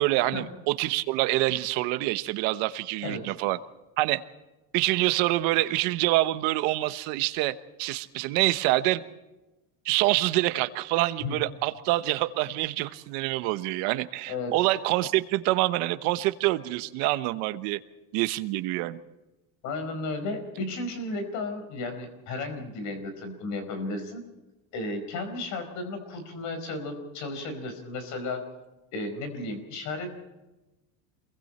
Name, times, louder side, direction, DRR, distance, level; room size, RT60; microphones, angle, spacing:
voice 1, 0.0-3.6 4.0-4.2 4.7-9.0 9.8-17.8 18.1-19.0, right 17 dB, 65° right, 12 dB, 1.2 m, -26 dB
voice 2, 3.0-3.4 11.2-11.4 14.3-14.5 19.6-24.2 24.7-28.4 28.9-30.1, left 2 dB, 45° left, 8 dB, 4.8 m, -34 dB
27.5 x 22.0 x 4.4 m, 1.0 s
cardioid pair, 175°, 39 cm